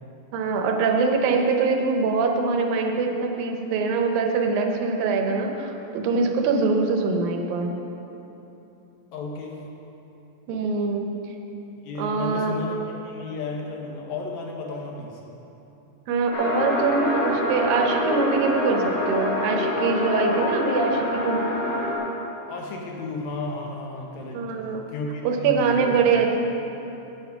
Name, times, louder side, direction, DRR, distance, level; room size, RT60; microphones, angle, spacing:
voice 1, 0.3-7.7 10.5-11.1 12.0-12.6 16.1-21.4 24.3-24.8 25.2-26.4, right 4 dB, 80° right, 3 dB, 2.4 m, -23 dB
voice 2, 9.1-9.6 11.8-15.2 22.5-24.4 24.9-26.0, left 3 dB, 70° left, 0 dB, 1.7 m, -33 dB
sound 1, 16.3-22.0, left 1 dB, 90° left, 3.6 m, -26 dB
9.1 x 8.0 x 5.7 m, 3.0 s
omnidirectional pair, 4.3 m